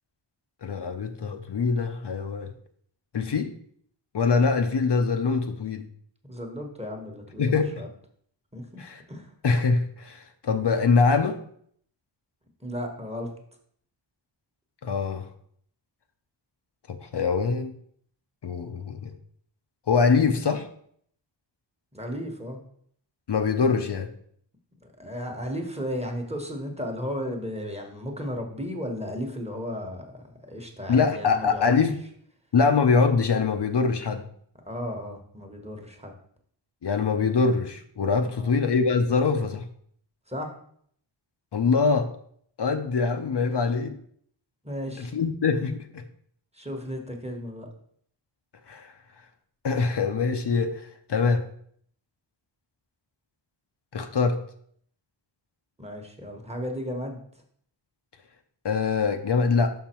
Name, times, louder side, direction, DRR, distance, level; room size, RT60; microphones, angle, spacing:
voice 1, 0.6-2.5 3.1-3.5 4.1-5.9 7.4-7.7 8.8-9.0 9.4-11.4 14.8-15.3 16.9-17.7 18.4-19.1 19.9-20.7 23.3-24.1 30.9-32.0 32.5-34.3 36.8-39.7 41.5-42.1 42.6-43.9 45.0-46.0 48.7-48.9 49.6-51.4 53.9-54.4 58.6-59.7, left 4 dB, 60° left, 7 dB, 0.7 m, -23 dB
voice 2, 6.2-7.9 8.5-8.8 9.1-9.3 12.6-13.3 21.9-22.6 25.0-31.9 34.7-36.1 38.2-38.5 40.3-40.5 44.6-45.1 46.5-47.7 55.8-57.2, equal, 15° right, 3 dB, 1.2 m, -34 dB
5.9 x 5.6 x 4.4 m, 0.64 s
wide cardioid pair, 95°, 47 cm